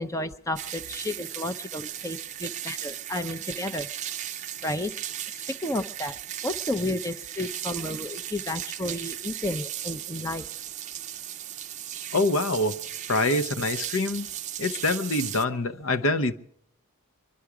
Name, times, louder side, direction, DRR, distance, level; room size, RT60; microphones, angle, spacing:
voice 1, 0.0-3.9 4.6-4.9 5.3-6.2 6.4-10.5, left 1 dB, 15° left, 0.5 m, -32 dB
sound 1, 0.6-15.4, right 11 dB, 35° right, 0.5 m, -36 dB
voice 2, 12.1-12.8 13.1-14.3 14.6-16.3, left 2 dB, 65° left, 0.8 m, -25 dB
24.0 x 11.5 x 4.8 m
head